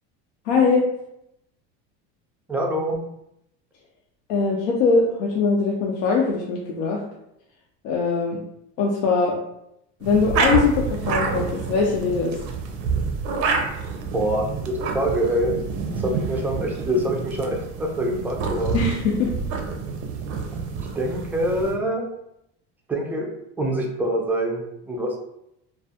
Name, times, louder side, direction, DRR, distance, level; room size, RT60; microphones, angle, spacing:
voice 1, 0.5-0.9 4.3-7.0 7.8-8.4 8.8-9.4 10.0-12.3 18.7-19.3, left 4 dB, 75° left, -2 dB, 0.5 m, -21 dB
voice 2, 2.5-3.0 14.1-15.5 16.0-18.8 20.9-22.0 22.9-25.2, right 1 dB, 5° right, 0 dB, 0.3 m, -25 dB
sound 1, 10.0-21.8, right 5 dB, 80° right, 0.6 m, -28 dB
2.3 x 2.2 x 2.7 m, 0.80 s
supercardioid pair, 115°, 34 cm